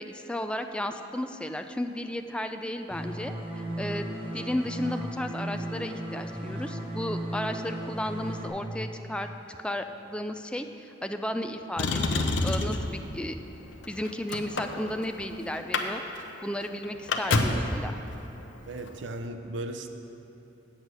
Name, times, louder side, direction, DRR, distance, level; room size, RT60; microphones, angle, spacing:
voice 1, 0.0-3.3 3.8-13.4 13.9-16.0 16.4-18.0, left 1 dB, 5° left, 6 dB, 0.4 m, -34 dB
sound 1, 2.9-8.5, right 1 dB, 30° right, 1.2 m, -35 dB
Motor vehicle (road), 11.8-12.9 13.7-15.2 15.6-15.9 16.2-16.3 16.6-17.7 18.8-18.9, left 2 dB, 80° left, 0.7 m, -27 dB
voice 2, 18.7-19.9, right 1 dB, 75° right, 5 dB, 0.5 m, -36 dB
8.2 x 8.1 x 6.2 m, 2.9 s
head